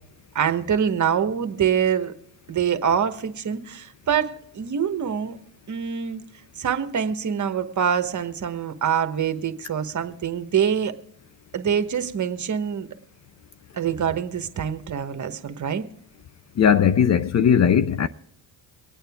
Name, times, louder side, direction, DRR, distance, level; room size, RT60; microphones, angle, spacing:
voice 1, 0.3-2.1 2.5-5.4 5.7-6.2 6.6-10.9 11.5-12.9 13.7-15.8, right 8 dB, 40° right, 1.1 m, -25 dB
voice 2, 16.6-18.1, left 8 dB, 40° left, 0.5 m, -18 dB
23.5 x 8.9 x 3.5 m
cardioid pair, 85°, 44 cm